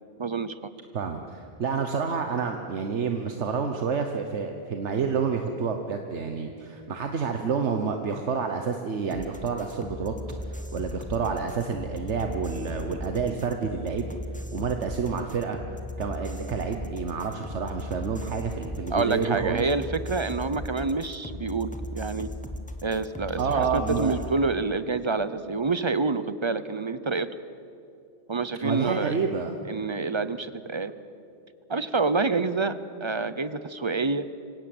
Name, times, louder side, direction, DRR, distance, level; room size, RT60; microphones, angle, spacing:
voice 1, 0.2-0.6 18.9-22.3 22.8-27.3 28.3-29.1 29.7-30.9 31.7-34.3, right 3 dB, 30° right, 14 dB, 0.6 m, -27 dB
voice 2, 0.9-10.1 10.5-14.1 14.5-15.6 16.0-19.7 23.4-24.1 28.6-29.5, right 5 dB, 75° right, 5 dB, 1.4 m, -29 dB
sound 1, 9.1-24.3, left 1 dB, 5° left, 1.4 m, -37 dB
25.5 x 17.0 x 7.9 m, 2.7 s
omnidirectional pair, 1.2 m